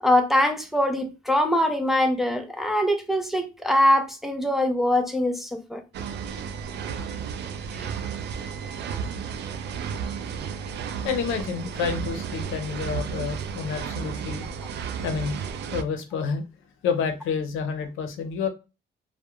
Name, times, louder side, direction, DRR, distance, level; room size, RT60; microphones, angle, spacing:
voice 1, 0.0-5.8, left 1 dB, ahead, 0.5 m, -23 dB
sound 1, 5.9-15.8, right 7 dB, 60° right, 0.4 m, -33 dB
voice 2, 11.0-14.5 15.0-15.4 15.7-16.4 16.8-18.5, left 6 dB, 85° left, 0.6 m, -29 dB
2.3 x 2.1 x 2.9 m
cardioid pair, 90°, 20 cm